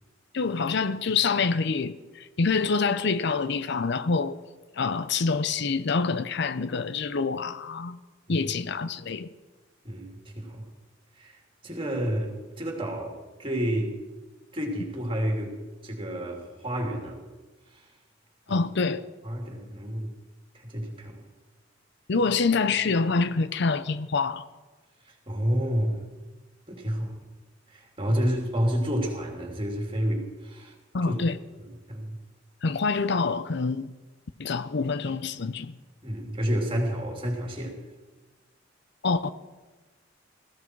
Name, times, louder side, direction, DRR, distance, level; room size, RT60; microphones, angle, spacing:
voice 1, 0.3-4.4 4.7-8.0 8.3-9.3 18.5-19.0 22.1-24.4 30.9-31.4 32.6-33.9 34.4-35.7 39.0-39.3, left 4 dB, 60° left, 0.6 m, -26 dB
voice 2, 9.8-10.6 11.2-11.4 11.6-13.9 14.5-15.6 15.8-17.2 17.7-17.9 18.5-18.6 19.2-20.1 20.5-21.2 25.3-26.0 26.7-27.1 27.7-30.7 31.0-31.1 31.6-32.2 36.0-37.7, equal, 25° right, 3.0 m, -30 dB
20.0 x 15.0 x 4.7 m
head